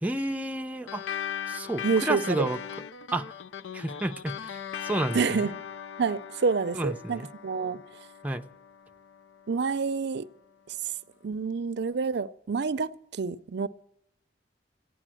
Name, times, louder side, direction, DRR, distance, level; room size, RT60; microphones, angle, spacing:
voice 1, 0.0-1.0 1.5-2.6 3.1-3.3 3.7-4.6 4.8-5.2 6.7-7.3 8.2-8.4, right 1 dB, 10° right, 0.5 m, -30 dB
sound 1, 0.9-9.7, left 8 dB, 85° left, 0.5 m, -39 dB
voice 2, 1.8-2.5 5.1-5.6 6.0-7.8 9.5-10.3 10.7-10.9 11.2-13.7, right 5 dB, 65° right, 0.5 m, -28 dB
15.0 x 10.0 x 7.6 m
head